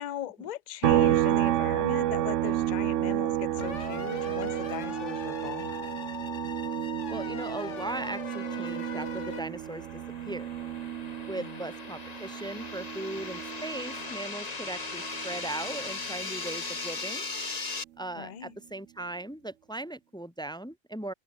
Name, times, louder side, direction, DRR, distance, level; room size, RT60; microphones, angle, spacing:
voice 1, 0.0-5.8 11.4-11.7 18.1-18.5, left 10 dB, 45° left, 0.6 m, -39 dB
sound 1, 0.8-14.4 14.7-16.9, right 13 dB, 75° right, 0.9 m, -31 dB
sound 2, 3.6-9.4, left 6 dB, 65° left, 1.7 m, -40 dB
voice 2, 7.1-9.9 10.3-10.5 11.3-17.3 18.0-21.1, right 2 dB, 5° left, 0.5 m, -38 dB
sound 3, 7.4-17.8, left 3 dB, 30° left, 1.6 m, -39 dB
omnidirectional pair, 1.4 m